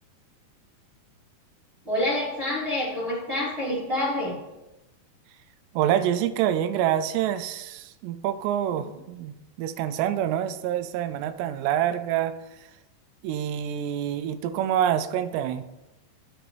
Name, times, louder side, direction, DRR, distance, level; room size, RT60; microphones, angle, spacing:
voice 1, 1.8-4.4 8.7-8.8, left 1 dB, 20° right, -8 dB, 1.6 m, -27 dB
voice 2, 5.7-12.4 13.2-15.6, right 10 dB, 85° right, 11 dB, 2.7 m, -26 dB
14.0 x 5.1 x 3.0 m, 0.98 s
omnidirectional pair, 5.0 m